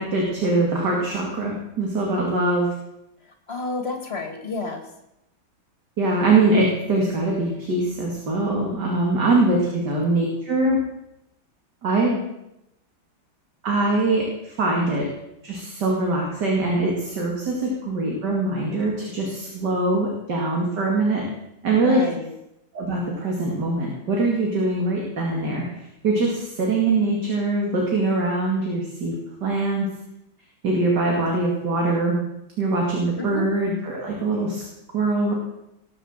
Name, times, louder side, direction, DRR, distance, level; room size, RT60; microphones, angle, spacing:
voice 1, 0.0-2.7 6.0-10.8 11.8-12.2 13.6-15.1 15.4-21.2 21.6-22.0 22.7-25.6 26.0-29.1 29.4-29.9 30.6-32.2 32.6-34.6 34.9-35.3, right 2 dB, 55° right, -1 dB, 3.0 m, -22 dB
voice 2, 3.2-4.9 9.5-9.8 21.8-22.3 33.2-33.5, left 3 dB, 30° left, 5 dB, 2.4 m, -31 dB
19.5 x 7.9 x 7.4 m, 0.87 s
omnidirectional pair, 2.2 m